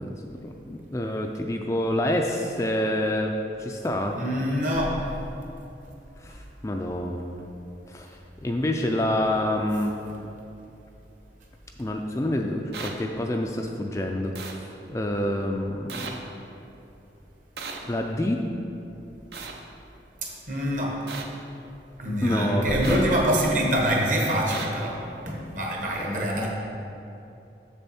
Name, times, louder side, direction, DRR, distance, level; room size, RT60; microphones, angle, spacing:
voice 1, 0.0-4.2 6.2-7.4 7.9-10.0 11.8-16.2 17.8-18.4 22.2-23.1 26.0-26.5, left 1 dB, 15° left, 2 dB, 0.3 m, -28 dB
voice 2, 4.2-4.9 20.2-20.9 22.0-25.0 25.3-26.5, equal, 45° right, -1 dB, 1.2 m, -25 dB
sound 1, 12.7-12.9 14.4-14.5 15.9-16.1 17.6-17.8 19.3-19.5 21.1-21.2 22.8-23.0 24.5-24.7, right 5 dB, 70° right, 0.7 m, -35 dB
6.9 x 6.8 x 4.2 m, 2.9 s
head